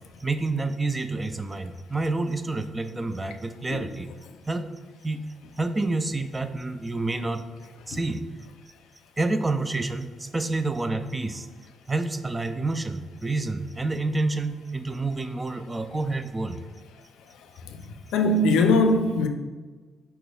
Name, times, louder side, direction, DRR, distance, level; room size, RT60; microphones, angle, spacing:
voice 1, 0.2-4.1 4.5-4.7 5.0-5.2 5.6-7.4 7.9-8.2 9.2-11.5 11.9-16.6, right 2 dB, 20° right, 0.3 m, -28 dB
voice 2, 18.1-19.3, left 2 dB, 90° left, 0.4 m, -20 dB
5.1 x 4.4 x 2.3 m
cardioid pair, 90°, 0 cm